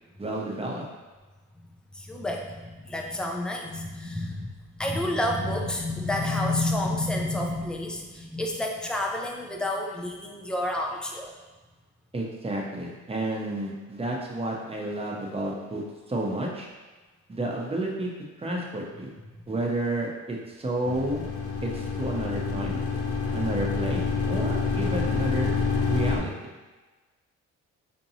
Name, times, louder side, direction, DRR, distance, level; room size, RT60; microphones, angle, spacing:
voice 1, 0.2-0.9 12.1-16.7 17.3-18.1 18.4-19.1 19.5-21.2 21.6-22.8 23.3-25.5 25.9-26.5, right 1 dB, 20° right, -2 dB, 0.8 m, -31 dB
voice 2, 1.9-11.3, left 1 dB, 5° left, 1 dB, 0.5 m, -29 dB
sound 1, 20.9-26.2, left 4 dB, 50° left, 0.8 m, -27 dB
4.4 x 2.8 x 2.7 m, 1.2 s
cardioid pair, 90°, 30 cm